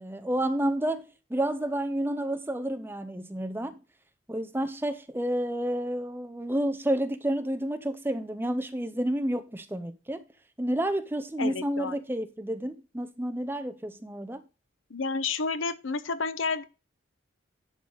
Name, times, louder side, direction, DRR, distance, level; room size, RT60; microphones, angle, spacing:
voice 1, 0.0-3.8 4.3-10.2 10.6-14.4, right 1 dB, 10° right, 0.6 m, -30 dB
voice 2, 11.4-11.9 14.9-16.6, left 4 dB, 80° left, 0.8 m, -30 dB
11.0 x 4.0 x 5.0 m
head